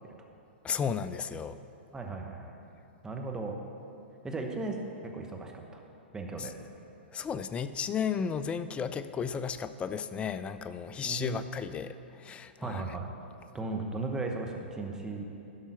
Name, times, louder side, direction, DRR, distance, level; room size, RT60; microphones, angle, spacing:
voice 1, 0.6-1.6 6.4-6.5 7.1-12.8, left 7 dB, 20° left, 12 dB, 0.4 m, -34 dB
voice 2, 1.9-2.5 3.0-3.6 4.2-4.8 5.0-5.8 6.1-6.5 11.0-11.5 12.6-13.1 13.5-15.2, right 3 dB, 10° right, 1 dB, 1.1 m, -36 dB
11.0 x 5.6 x 5.9 m, 2.7 s
hypercardioid pair, 115°, 6 cm